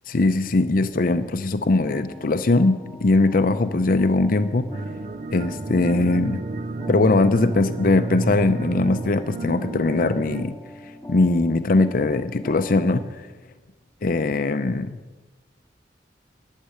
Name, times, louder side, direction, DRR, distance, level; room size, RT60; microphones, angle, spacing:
voice 1, 0.1-4.7 5.3-6.4 6.9-10.6 11.1-13.3 14.0-15.0, left 2 dB, 55° left, 10 dB, 0.6 m, -21 dB
sound 1, 1.8-13.1, left 1 dB, 10° left, 3.1 m, -42 dB
sound 2, 4.7-10.4, right 3 dB, 45° right, 0.5 m, -31 dB
11.5 x 7.5 x 9.8 m, 1.3 s
head